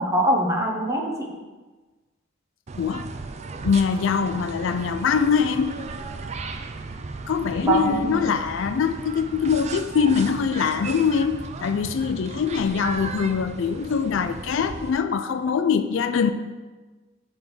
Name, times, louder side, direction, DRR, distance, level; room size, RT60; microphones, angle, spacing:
voice 1, 0.0-1.4 7.6-8.3, right 1 dB, 15° right, 1 dB, 0.7 m, -23 dB
sound 1, 2.7-14.9, right 4 dB, 30° right, 0.3 m, -36 dB
voice 2, 2.8-3.1 3.6-5.8 7.3-16.3, left 6 dB, 60° left, 10 dB, 0.3 m, -23 dB
7.0 x 3.5 x 6.2 m, 1.3 s
head